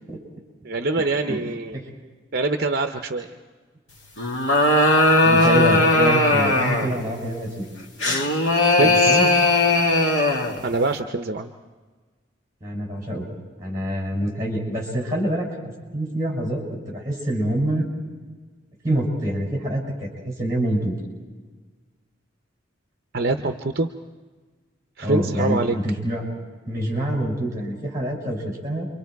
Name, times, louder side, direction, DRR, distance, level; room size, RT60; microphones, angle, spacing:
voice 1, 0.6-1.8 2.3-3.3 8.8-9.2 10.6-11.5 23.1-23.9 25.0-25.8, right 3 dB, 50° right, 6 dB, 0.7 m, -24 dB
sound 1, 4.2-7.0 8.0-10.6, left 2 dB, 70° left, 2.4 m, -18 dB
voice 2, 5.2-7.7 8.8-9.3 12.6-13.3 13.6-17.9 18.8-20.9 25.0-26.2 26.7-28.9, right 1 dB, 15° right, -1 dB, 6.0 m, -26 dB
29.0 x 24.0 x 4.7 m, 1.4 s
head